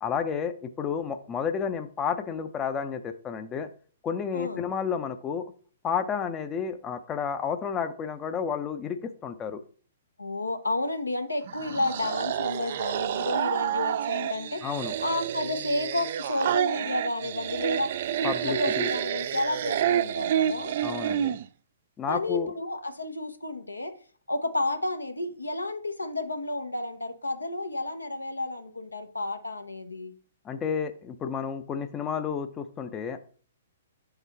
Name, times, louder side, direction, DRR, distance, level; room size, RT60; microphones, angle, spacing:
voice 1, 0.0-3.7 4.0-5.5 5.8-9.6 14.6-14.9 18.2-18.9 20.8-21.4 22.0-22.5 30.4-33.2, left 7 dB, 20° left, 8 dB, 0.5 m, -31 dB
voice 2, 10.2-14.6 15.0-17.9 18.2-20.7 22.1-23.9 24.3-30.1, left 2 dB, 85° left, 6 dB, 0.9 m, -31 dB
sound 1, 11.5-21.5, right 10 dB, 50° right, 0.3 m, -29 dB
7.0 x 4.0 x 4.1 m, 0.43 s
figure-of-eight pair, 120°, 0 cm